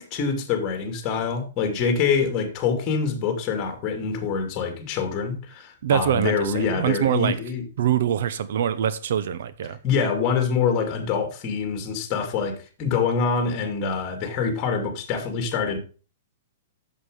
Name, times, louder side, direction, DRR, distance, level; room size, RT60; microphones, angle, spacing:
voice 1, 0.0-7.6 9.8-15.8, left 5 dB, 30° left, 2.5 m, -25 dB
voice 2, 5.8-7.4 7.8-9.8, right 10 dB, 65° right, 0.9 m, -24 dB
8.2 x 7.4 x 5.0 m
hypercardioid pair, 150°, 0 cm